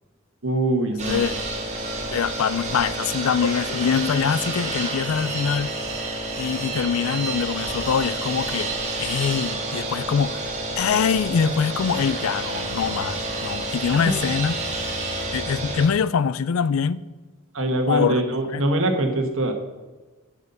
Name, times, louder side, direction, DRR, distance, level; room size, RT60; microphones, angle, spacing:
voice 1, 0.4-1.4 13.9-14.1 17.5-19.5, right 1 dB, 65° right, 1.4 m, -23 dB
sound 1, 1.0-15.9, right 2 dB, 35° right, 1.9 m, -29 dB
voice 2, 2.1-5.7 6.4-8.7 9.0-14.5 15.3-17.0 17.9-18.2 18.5-18.6, left 6 dB, 75° left, 0.4 m, -24 dB
9.7 x 7.3 x 5.5 m
head